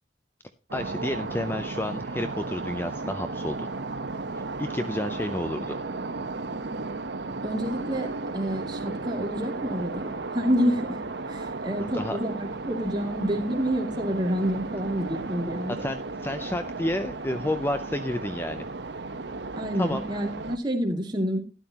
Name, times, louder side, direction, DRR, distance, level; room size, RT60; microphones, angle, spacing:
voice 1, 0.7-3.7 4.6-5.8 11.8-12.2 15.7-18.7 19.7-20.0, left 1 dB, 10° left, 9 dB, 0.5 m, -30 dB
sound 1, 0.7-20.6, right 3 dB, 75° right, 1.0 m, -34 dB
voice 2, 7.4-8.1 8.3-11.0 11.3-15.9 19.6-21.4, equal, 25° right, 1 dB, 2.4 m, -28 dB
12.5 x 11.0 x 2.9 m, 0.32 s
head